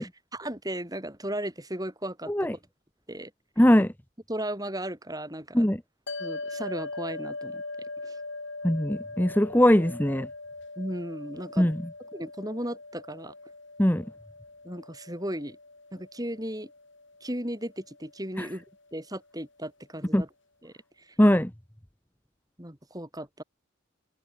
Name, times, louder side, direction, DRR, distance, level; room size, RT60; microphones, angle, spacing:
voice 1, 0.0-2.5 3.1-3.3 4.3-5.7 6.2-7.6 8.0-8.2 10.8-11.7 12.1-13.3 14.6-15.6 15.9-16.7 17.2-18.6 18.9-20.3 20.6-21.1 22.6-23.4, right 1 dB, 15° right, 6.6 m, -36 dB
voice 2, 3.6-3.9 5.5-5.8 8.6-10.3 11.6-11.9 13.8-14.1 18.4-18.5 20.1-20.2 21.2-21.5, equal, 10° left, 1.0 m, -21 dB
sound 1, 6.1-18.6, left 2 dB, 60° left, 4.6 m, -41 dB
head